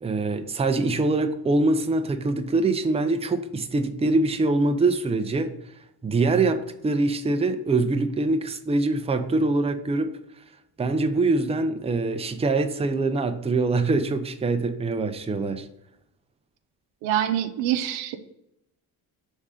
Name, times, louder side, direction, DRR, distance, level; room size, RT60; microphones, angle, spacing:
voice 1, 0.0-5.5 6.0-10.1 10.8-15.7, right 3 dB, 15° right, 8 dB, 0.6 m, -24 dB
voice 2, 17.0-18.3, right 11 dB, 85° right, 9 dB, 0.7 m, -26 dB
5.4 x 3.7 x 4.9 m, 0.83 s
supercardioid pair, 75°, 43 cm